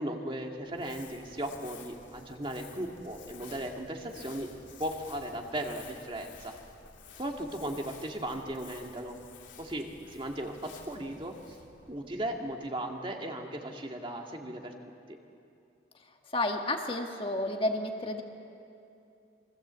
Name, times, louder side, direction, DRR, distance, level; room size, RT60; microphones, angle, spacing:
voice 1, 0.0-4.5 4.8-6.5 7.2-9.2 9.6-11.6 11.9-14.7 15.1-15.2, right 1 dB, 30° right, 2 dB, 1.9 m, -37 dB
Crumpling crinkling, 0.6-13.1, left 5 dB, 80° left, 3.2 m, -53 dB
voice 2, 16.0-18.2, left 1 dB, 30° left, 3 dB, 1.7 m, -31 dB
28.0 x 22.5 x 8.1 m, 2.6 s
head